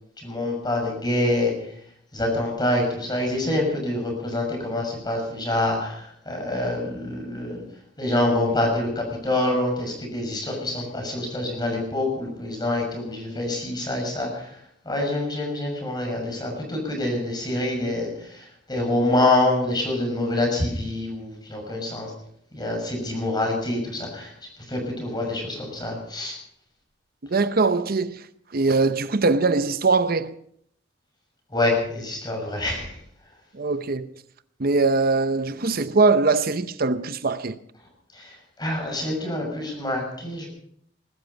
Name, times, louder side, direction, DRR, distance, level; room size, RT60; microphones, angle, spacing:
voice 1, 0.2-1.5 2.1-7.6 8.0-14.5 14.8-18.4 18.7-22.1 22.5-24.3 24.7-26.4 31.5-32.9 38.2-38.3 38.6-40.5, left 1 dB, 20° left, 6.3 m, -26 dB
voice 2, 27.3-28.2 28.5-30.3 33.6-34.1 34.6-37.6, right 3 dB, 50° right, 0.7 m, -21 dB
21.0 x 13.0 x 5.3 m
head